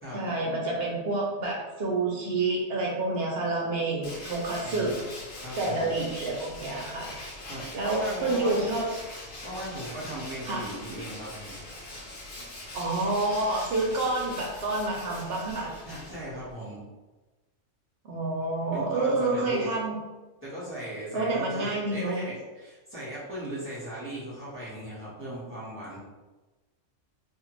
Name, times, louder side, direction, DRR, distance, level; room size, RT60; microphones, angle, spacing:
voice 1, 0.1-4.9 5.6-7.1 7.7-8.9 10.4-10.6 12.7-15.7 18.0-20.0 21.1-22.2, right 2 dB, 60° right, -2 dB, 0.7 m, -28 dB
Tools, 4.0-16.5, left 1 dB, 85° left, 1.1 m, -42 dB
voice 2, 4.6-4.9 5.4-5.9 7.5-8.6 9.4-11.6 15.8-16.8 18.7-19.7 20.4-26.0, right 1 dB, 10° right, -10 dB, 1.1 m, -38 dB
2.5 x 2.5 x 3.1 m, 1.2 s
omnidirectional pair, 1.3 m